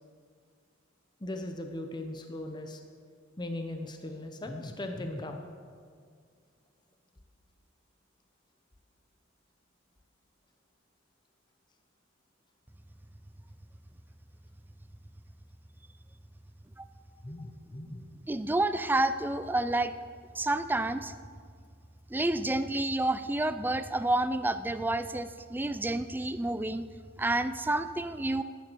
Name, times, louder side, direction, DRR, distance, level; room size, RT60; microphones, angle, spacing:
voice 1, 1.2-2.8 3.4-5.4 17.2-18.1, left 1 dB, 20° left, 5 dB, 0.8 m, -38 dB
voice 2, 18.3-19.9 20.4-21.1 22.1-26.8 27.2-28.4, right 2 dB, 10° right, 12 dB, 0.4 m, -29 dB
14.0 x 11.5 x 4.6 m, 2.1 s
head